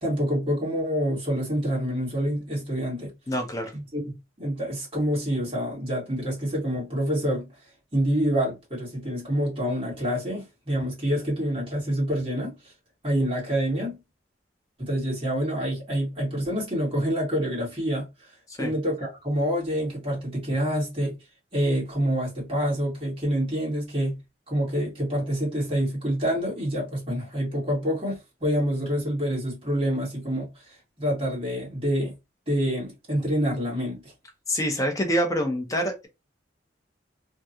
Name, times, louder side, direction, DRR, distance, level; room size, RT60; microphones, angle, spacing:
voice 1, 0.0-3.1 3.7-4.0 4.4-7.5 7.9-12.5 13.0-14.0 14.8-18.1 18.6-21.2 21.5-24.1 24.5-30.5 31.0-32.1 32.5-34.1, equal, 30° right, 1.9 m, -27 dB
voice 2, 3.3-3.7 18.5-18.7 34.5-36.1, equal, 20° left, 0.8 m, -26 dB
3.6 x 2.3 x 2.8 m
head